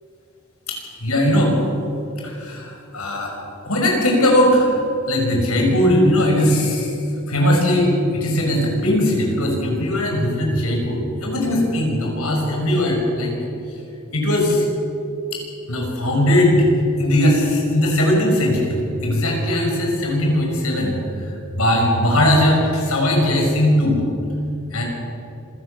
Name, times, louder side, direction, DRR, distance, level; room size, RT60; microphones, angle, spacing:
voice 1, 0.7-1.6 2.2-3.3 3.6-6.9 7.3-13.3 14.1-14.6 15.3-15.4 15.7-16.7 17.0-21.0 21.5-24.0 24.7-24.8, left 1 dB, 90° left, 0 dB, 6.2 m, -19 dB
26.0 x 17.0 x 6.9 m, 2.8 s
head